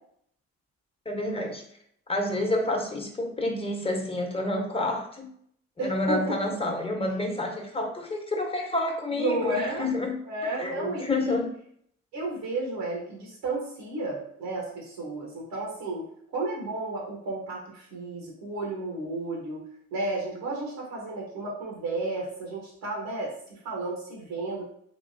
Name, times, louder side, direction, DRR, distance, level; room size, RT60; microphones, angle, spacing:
voice 1, 1.0-1.6 2.1-5.3 5.8-10.2 10.6-11.6, left 2 dB, 15° left, 2 dB, 1.0 m, -29 dB
voice 2, 5.8-6.4 9.1-9.9 10.2-11.3 12.1-19.6 19.9-24.7, right 2 dB, 80° right, -3 dB, 1.3 m, -32 dB
3.7 x 3.0 x 2.6 m, 0.66 s
hypercardioid pair, 55°, 33 cm